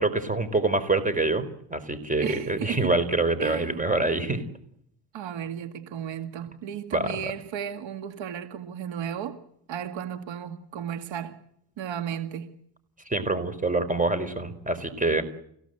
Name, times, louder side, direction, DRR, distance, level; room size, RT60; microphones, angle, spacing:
voice 1, 0.0-1.4 1.7-4.4 6.9-7.1 13.1-15.2, right 2 dB, 15° right, 4.4 m, -25 dB
voice 2, 2.2-3.0 3.4-3.8 5.1-9.4 9.7-11.4 11.8-12.5, right 9 dB, 80° right, 2.2 m, -34 dB
28.5 x 17.0 x 8.0 m
cardioid pair, 70°, 45 cm